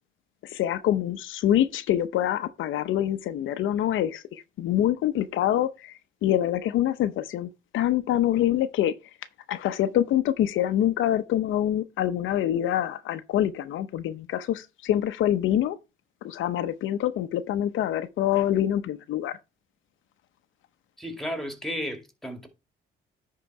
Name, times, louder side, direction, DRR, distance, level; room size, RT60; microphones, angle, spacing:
voice 1, 0.4-9.0 9.5-15.8 16.2-19.4, left 11 dB, 80° left, 0.7 m, -25 dB
voice 2, 21.0-22.5, equal, ahead, 2.2 m, -33 dB
10.0 x 3.8 x 4.6 m
cardioid pair, 90°, 20 cm